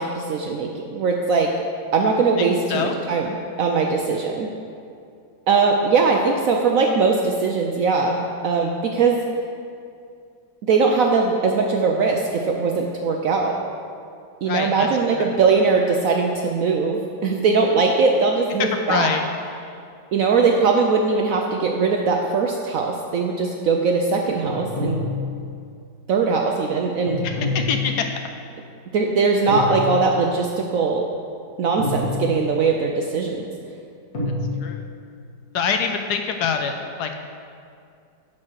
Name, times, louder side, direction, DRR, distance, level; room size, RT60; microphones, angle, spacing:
voice 1, 0.0-1.5 1.9-4.5 5.5-9.2 10.6-13.6 14.4-19.1 20.1-25.0 26.1-27.3 28.9-31.0 31.6-33.5, right 4 dB, 70° right, 1 dB, 0.8 m, -20 dB
voice 2, 2.4-3.0 14.5-14.9 15.1-15.3 18.6-19.2 27.2-28.1 34.6-34.8 35.5-37.1, left 6 dB, 70° left, 5 dB, 1.1 m, -25 dB
sound 1, 24.4-25.7 27.1-28.3 29.5-30.4 31.8-32.8 34.1-34.5, left 2 dB, 55° left, 2.0 m, -27 dB
9.8 x 4.3 x 6.2 m, 2.4 s
omnidirectional pair, 1.9 m